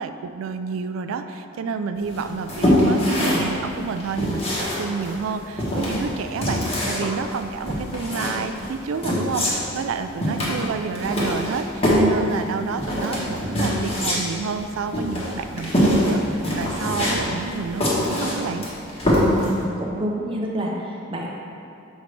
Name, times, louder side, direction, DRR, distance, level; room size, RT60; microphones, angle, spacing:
voice 1, 0.0-18.7, right 5 dB, 85° right, 9 dB, 0.3 m, -29 dB
sound 1, 2.1-19.6, left 1 dB, 30° left, 1.2 m, -24 dB
voice 2, 19.3-20.7 21.1-21.3, right 1 dB, 25° right, -2 dB, 0.6 m, -28 dB
6.3 x 5.0 x 3.3 m, 2.6 s
head